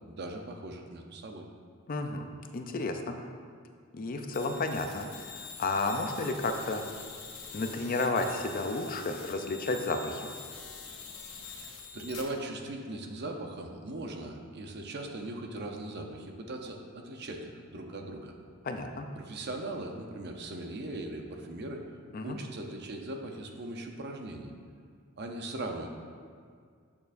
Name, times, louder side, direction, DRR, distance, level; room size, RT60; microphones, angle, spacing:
voice 1, 0.1-1.4 11.6-18.3 19.1-21.8 22.2-24.5 25.2-25.9, right 2 dB, 50° right, 3 dB, 0.7 m, -39 dB
voice 2, 1.9-2.3 2.5-3.2 3.9-6.8 7.5-10.3 18.6-19.1 22.1-22.4, left 3 dB, 40° left, 5 dB, 0.5 m, -32 dB
sound 1, 4.3-12.2, left 6 dB, 70° left, 0.9 m, -45 dB
8.4 x 6.8 x 2.6 m, 2.1 s
head